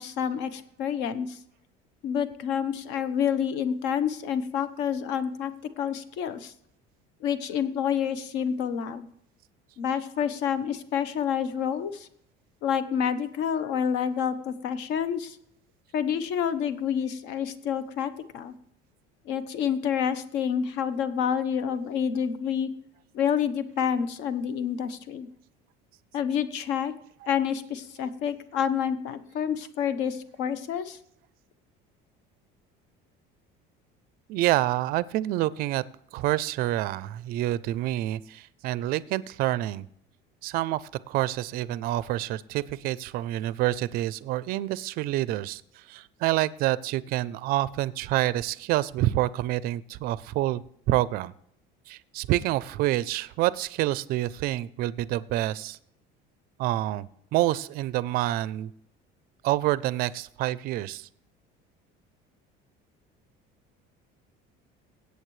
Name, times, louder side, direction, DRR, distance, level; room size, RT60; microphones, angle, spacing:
voice 1, 0.0-1.4 2.0-5.5 5.8-6.5 7.2-9.1 9.8-12.1 12.6-15.4 15.9-18.5 19.2-22.7 23.1-25.3 26.1-26.9 27.3-31.0, left 8 dB, 60° left, 12 dB, 1.0 m, -28 dB
voice 2, 34.3-35.8 36.1-39.9 40.4-50.6 50.9-51.3 51.9-55.8 56.6-58.7 59.4-61.1, right 15 dB, 50° right, 18 dB, 0.4 m, -27 dB
17.5 x 8.2 x 3.2 m, 0.72 s
cardioid pair, 175°, 20 cm